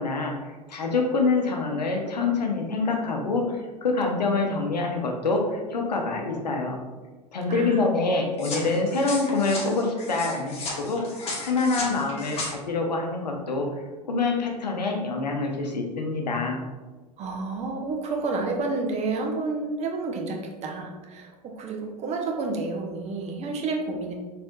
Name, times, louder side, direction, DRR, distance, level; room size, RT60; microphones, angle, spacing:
voice 1, 0.0-6.8 7.3-13.7 14.1-16.6, left 3 dB, 85° left, 2 dB, 0.6 m, -26 dB
voice 2, 7.5-7.9 17.2-24.1, right 3 dB, 30° right, 2 dB, 0.7 m, -30 dB
sound 1, 8.4-12.5, left 2 dB, 30° left, 1.3 m, -35 dB
4.2 x 3.4 x 2.3 m, 1.3 s
figure-of-eight pair, 85°, 21 cm